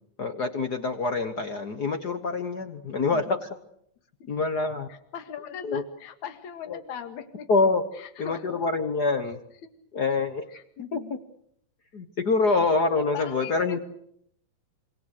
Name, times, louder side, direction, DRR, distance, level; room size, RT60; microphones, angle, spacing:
voice 1, 0.2-3.4 4.3-4.9 5.6-5.8 6.7-6.8 7.5-7.8 8.2-9.4 9.9-10.4 10.9-11.0 11.9-13.8, left 3 dB, 55° left, 8 dB, 1.1 m, -25 dB
voice 2, 4.9-7.5 7.9-8.6 9.6-9.7 10.5-11.2 13.1-13.8, left 9 dB, 70° left, 9 dB, 3.1 m, -40 dB
26.0 x 25.0 x 6.6 m, 0.71 s
omnidirectional pair, 3.5 m